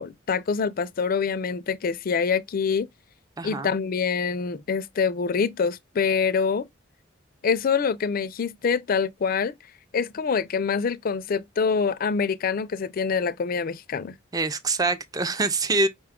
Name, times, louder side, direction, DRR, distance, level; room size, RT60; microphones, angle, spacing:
voice 1, 0.0-2.9 3.4-6.7 7.4-9.5 9.9-14.2, left 5 dB, 50° left, 0.4 m, -25 dB
voice 2, 3.4-3.7 14.3-15.9, right 3 dB, 20° right, 0.4 m, -25 dB
5.3 x 2.2 x 3.5 m
head